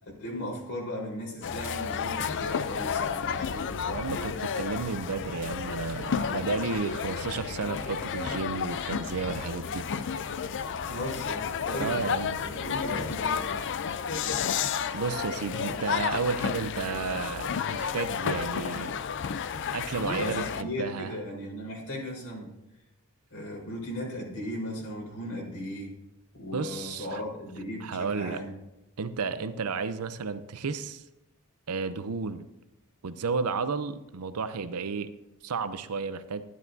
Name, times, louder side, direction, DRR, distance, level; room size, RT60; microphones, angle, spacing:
voice 1, 0.0-3.8 10.8-13.5 20.0-22.5 23.3-25.9 26.3-28.5, left 1 dB, 90° left, -3 dB, 4.0 m, -37 dB
sound 1, 1.4-20.6, left 7 dB, 55° left, 0.4 m, -32 dB
voice 2, 3.9-9.9 11.7-12.4 14.9-18.9 19.7-21.1 26.5-27.2 27.8-28.4 29.0-31.0 31.7-32.5 33.0-35.1 35.4-36.4, right 4 dB, 80° right, 12 dB, 0.6 m, -32 dB
Bird, 7.6-17.3, left 2 dB, 70° left, 1.1 m, -47 dB
12.5 x 11.0 x 2.6 m, 0.94 s
head